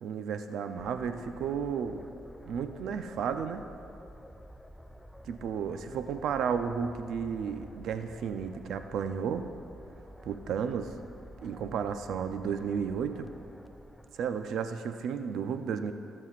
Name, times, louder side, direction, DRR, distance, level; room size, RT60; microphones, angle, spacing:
voice 1, 0.0-2.1 2.5-3.6 5.3-9.5 10.2-10.9 11.4-13.3 14.2-15.9, right 7 dB, 75° right, 8 dB, 0.5 m, -33 dB
sound 1, 0.8-15.0, equal, 5° left, 0.5 m, -50 dB
21.5 x 7.6 x 2.5 m, 2.7 s
cardioid pair, 90°, 0 cm